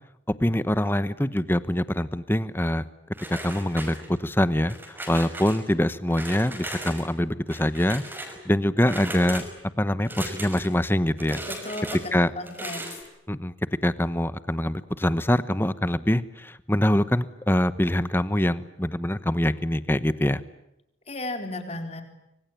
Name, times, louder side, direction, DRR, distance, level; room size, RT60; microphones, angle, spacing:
voice 1, 0.4-2.8 3.3-8.0 8.4-9.4 9.8-11.4 12.1-12.3 13.3-13.5 13.8-20.4, left 1 dB, 10° left, 14 dB, 1.0 m, -24 dB
sound 1, 3.1-4.3 4.7-5.6 6.1-7.1 7.5-8.4 8.8-9.5 10.0-10.7 11.2-12.0 12.4-13.0, right 1 dB, 10° right, 5.6 m, -37 dB
voice 2, 11.6-13.0 21.1-22.0, left 2 dB, 35° left, 6 dB, 4.1 m, -34 dB
25.5 x 25.0 x 9.1 m, 0.85 s
head